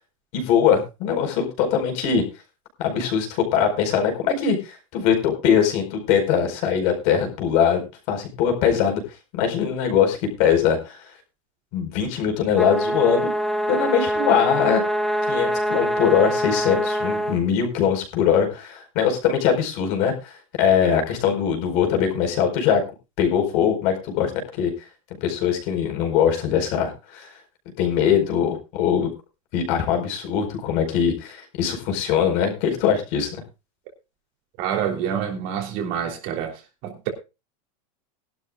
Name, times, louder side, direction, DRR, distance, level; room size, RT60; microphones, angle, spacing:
voice 1, 0.3-2.2 2.8-9.0 9.3-11.0 11.7-13.3 13.7-14.8 15.3-22.8 23.2-24.7 25.2-27.3 27.8-29.1 29.5-33.4, left 8 dB, 45° left, 4.7 m, -22 dB
sound 1, 12.5-17.4, equal, ahead, 0.8 m, -24 dB
voice 2, 34.6-36.5 36.8-37.1, right 8 dB, 45° right, 3.3 m, -27 dB
20.5 x 12.0 x 2.4 m
supercardioid pair, 175°, 18 cm